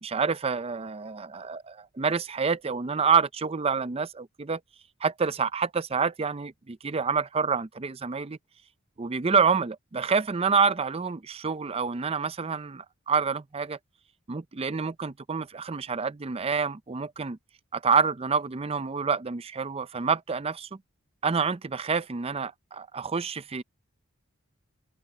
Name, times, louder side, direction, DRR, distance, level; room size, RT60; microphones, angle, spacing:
voice 1, 0.0-4.6 5.0-8.4 9.0-13.8 14.3-17.4 17.7-20.8 21.2-23.6, right 5 dB, 25° right, 0.5 m, -27 dB
open air
head